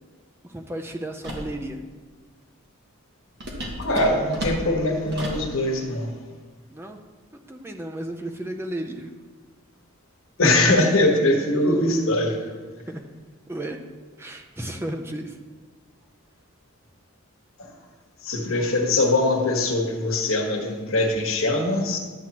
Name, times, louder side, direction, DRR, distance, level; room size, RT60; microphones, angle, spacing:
voice 1, 0.4-1.8 6.7-7.0 7.5-9.1 12.9-13.1 13.5-13.8 14.2-15.4, right 1 dB, 10° right, 3 dB, 0.5 m, -33 dB
sound 1, 1.2-1.5 3.4-5.5, equal, 50° right, 1.3 m, -32 dB
voice 2, 3.8-6.1 10.4-12.5 17.6-17.7 18.2-22.0, left 2 dB, 70° left, 1 dB, 1.3 m, -22 dB
11.5 x 7.3 x 3.0 m, 1.4 s
head